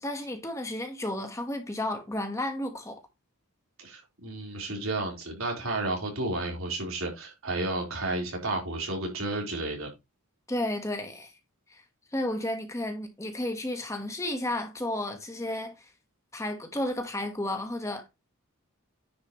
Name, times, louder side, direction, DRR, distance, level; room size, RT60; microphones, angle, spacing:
voice 1, 0.0-3.0 10.5-11.3 11.7-11.8 12.1-15.9 16.3-18.1, left 1 dB, 15° left, 1.2 m, -32 dB
voice 2, 3.8-9.9, right 2 dB, 75° right, 3.9 m, -32 dB
9.8 x 6.6 x 3.0 m
head